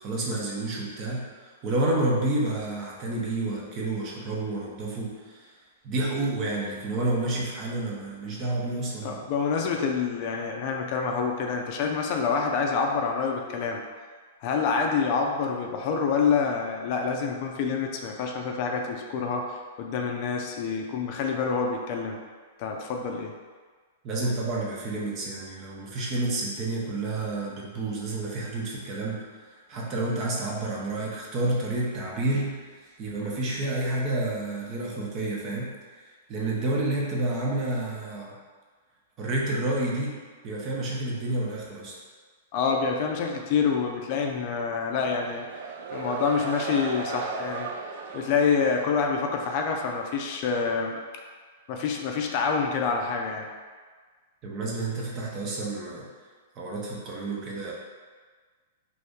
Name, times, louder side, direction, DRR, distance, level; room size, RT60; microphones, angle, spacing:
voice 1, 0.0-5.5 5.8-9.2 24.0-29.3 29.7-35.7 36.3-38.4 39.2-40.2 40.4-42.0 54.4-56.1 56.6-57.7, right 2 dB, 35° right, -3 dB, 0.8 m, -29 dB
voice 2, 9.0-13.8 14.4-22.2 22.6-23.3 42.5-45.5 45.9-47.7 48.1-51.0 51.7-53.5, left 5 dB, 50° left, 2 dB, 0.4 m, -27 dB
sound 1, 44.9-49.4, right 4 dB, 60° right, 0.3 m, -36 dB
2.7 x 2.6 x 3.5 m, 1.5 s
hypercardioid pair, 115°, 0 cm